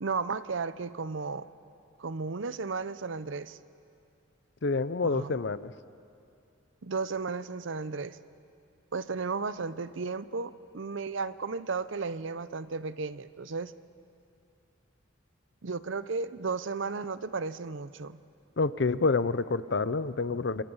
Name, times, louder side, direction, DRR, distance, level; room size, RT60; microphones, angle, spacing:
voice 1, 0.0-1.5 2.0-3.6 5.0-5.4 6.8-8.2 8.9-13.7 15.6-18.2, right 4 dB, 65° right, 15 dB, 0.6 m, -34 dB
voice 2, 4.6-5.7 18.6-20.6, left 3 dB, 55° left, 15 dB, 0.6 m, -28 dB
29.0 x 27.0 x 5.6 m, 2.5 s
head